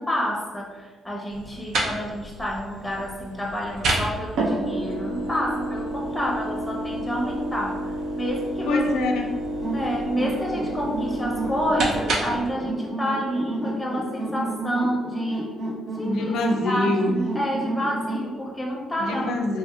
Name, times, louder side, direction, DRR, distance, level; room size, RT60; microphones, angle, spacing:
voice 1, 0.0-7.8 8.2-8.8 9.7-15.5 16.0-16.3 16.6-19.3, equal, 10° left, -2 dB, 0.7 m, -29 dB
sound 1, 1.3-12.5, right 1 dB, 70° right, 0.5 m, -29 dB
voice 2, 8.7-9.3 16.0-17.2 19.0-19.6, left 2 dB, 80° left, 4 dB, 0.4 m, -25 dB
sound 2, 9.6-18.3, right 1 dB, 50° right, 0.8 m, -31 dB
3.2 x 2.7 x 2.3 m, 1.4 s
cardioid pair, 90°, 0 cm